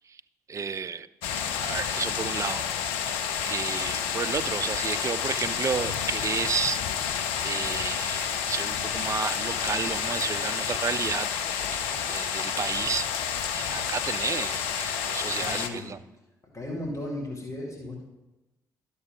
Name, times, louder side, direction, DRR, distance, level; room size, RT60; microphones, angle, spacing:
voice 1, 0.5-1.1 1.3-2.6 3.0-11.3 11.7-13.1 13.5-16.0, right 6 dB, 30° right, 0.4 m, -32 dB
sound 1, 1.2-15.7, left 8 dB, 70° left, 0.6 m, -30 dB
voice 2, 15.4-15.9 16.5-18.0, left 1 dB, 35° left, 2.1 m, -35 dB
11.0 x 6.7 x 3.9 m
figure-of-eight pair, 40°, 10 cm